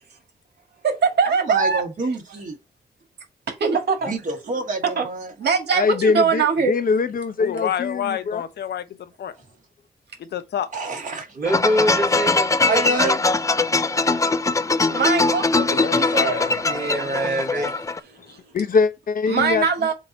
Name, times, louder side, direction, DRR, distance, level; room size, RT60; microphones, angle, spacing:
voice 1, 0.8-1.8 3.5-3.8 5.4-6.7 14.9-16.4 18.3-18.4 19.3-19.9, right 5 dB, 85° right, 1.7 m, -22 dB
voice 2, 1.5-2.5 4.1-5.3 10.7-11.3 12.6-13.2 16.4-17.7, right 3 dB, 50° right, 2.3 m, -28 dB
voice 3, 5.7-8.4 18.5-19.7, left 5 dB, 55° left, 0.8 m, -22 dB
voice 4, 7.4-9.3 10.2-10.7 15.6-16.6, left 9 dB, 85° left, 0.8 m, -29 dB
voice 5, 11.3-13.2 16.7-18.5, right 1 dB, 65° right, 3.0 m, -25 dB
sound 1, 11.5-18.0, left 3 dB, 20° left, 0.4 m, -21 dB
7.4 x 2.8 x 5.5 m
wide cardioid pair, 105°, 17 cm